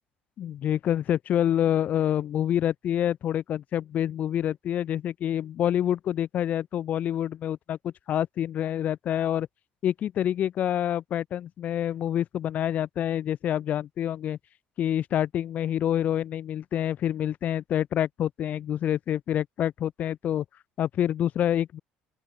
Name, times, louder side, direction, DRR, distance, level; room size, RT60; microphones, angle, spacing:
voice 1, 0.4-9.5 9.8-14.4 14.8-20.4 20.8-21.8, left 10 dB, 55° left, 4.2 m, -27 dB
open air
supercardioid pair, 100°, 3 cm